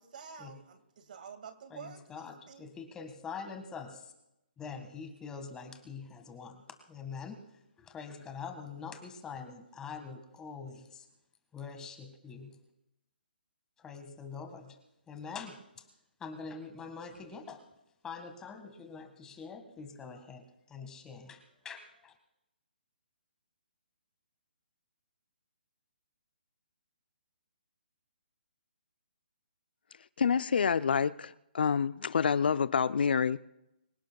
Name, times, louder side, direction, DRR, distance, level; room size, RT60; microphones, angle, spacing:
voice 1, 0.0-2.7, right 7 dB, 50° right, 2.1 m, -49 dB
voice 2, 1.7-4.1 4.6-6.6 6.9-7.4 7.8-11.1 11.5-12.6 13.8-14.8 15.1-15.8 16.2-17.6 18.0-20.4 20.7-22.1, left 5 dB, 10° left, 1.7 m, -44 dB
voice 3, 30.2-33.4, left 6 dB, 65° left, 0.5 m, -28 dB
25.0 x 16.5 x 2.3 m
hypercardioid pair, 150°, 6 cm